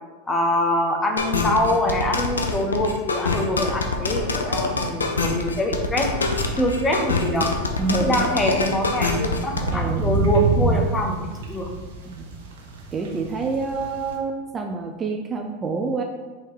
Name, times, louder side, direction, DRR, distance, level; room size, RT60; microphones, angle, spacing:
voice 1, 0.3-6.1 6.6-7.5 8.0-11.7, left 1 dB, 15° left, 2 dB, 0.7 m, -24 dB
sound 1, 1.2-9.7, left 3 dB, 90° left, 0.4 m, -24 dB
sound 2, 6.3-14.1, right 3 dB, 70° right, 0.7 m, -29 dB
voice 2, 7.8-8.2 9.7-10.1 12.0-12.3 12.9-16.0, right 4 dB, 25° right, 3 dB, 0.4 m, -27 dB
3.5 x 2.9 x 4.4 m, 1.3 s
hypercardioid pair, 95°, 0 cm